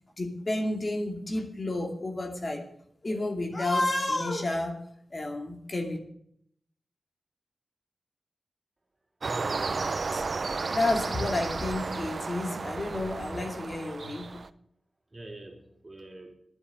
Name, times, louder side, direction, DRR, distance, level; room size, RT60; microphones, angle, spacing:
voice 1, 0.2-2.6 3.0-4.8 5.1-6.0 10.7-14.4, left 2 dB, 40° left, 2 dB, 2.5 m, -30 dB
voice 2, 9.2-10.1 15.1-16.3, right 1 dB, 25° right, 1 dB, 3.5 m, -43 dB
sound 1, 9.2-14.5, right 4 dB, 55° right, 0.6 m, -33 dB
11.5 x 9.5 x 8.8 m, 0.71 s
wide cardioid pair, 85°, 0 cm